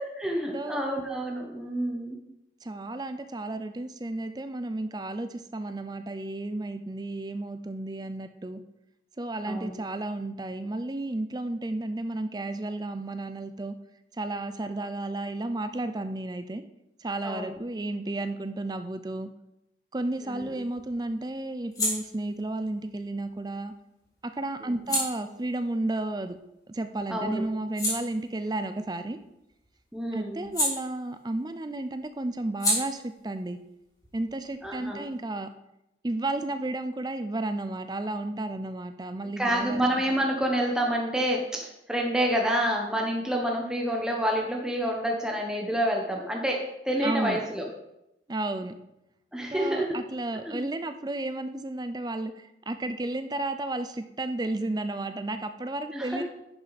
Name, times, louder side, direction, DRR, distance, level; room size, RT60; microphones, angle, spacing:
voice 1, 0.2-2.2 9.5-9.8 17.2-17.6 20.2-20.5 24.6-24.8 27.1-27.5 29.9-30.5 34.6-35.0 39.4-47.7 49.3-49.9 50.4-50.7 55.9-56.2, equal, 5° right, 0 dB, 1.1 m, -28 dB
voice 2, 2.6-8.6 9.2-13.7 14.1-16.6 17.0-19.3 19.9-23.7 24.2-26.4 26.7-29.2 30.1-33.6 34.1-35.5 36.0-39.8 47.0-47.4 48.3-48.8 49.5-56.2, right 2 dB, 25° right, 10 dB, 0.5 m, -32 dB
sound 1, 20.0-26.9 27.3-31.5 31.7-35.2, left 1 dB, 20° left, 3.3 m, -35 dB
10.5 x 6.5 x 4.2 m, 0.86 s
head